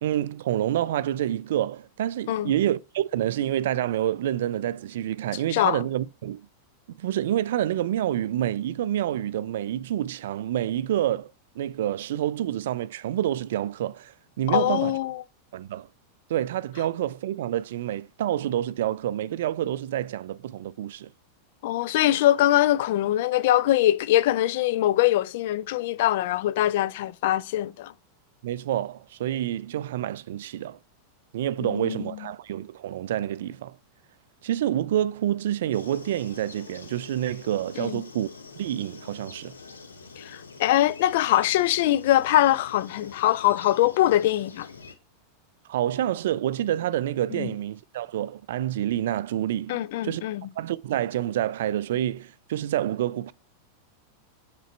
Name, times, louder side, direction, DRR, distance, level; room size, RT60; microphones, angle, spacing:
voice 1, 0.0-6.5 6.9-15.0 15.5-15.9 16.3-21.1 28.4-30.8 31.3-33.8 34.4-38.3 38.6-39.5 45.7-50.2 50.6-53.3, right 12 dB, 55° right, 0.3 m, -28 dB
voice 2, 5.5-5.8 14.5-15.2 21.6-27.9 31.6-32.2 37.8-38.0 40.2-44.7 47.3-47.5 49.7-50.4, left 13 dB, 50° left, 0.4 m, -23 dB
sound 1, 35.7-44.9, left 4 dB, 75° left, 1.0 m, -45 dB
7.5 x 6.4 x 3.2 m
figure-of-eight pair, 90°, 0 cm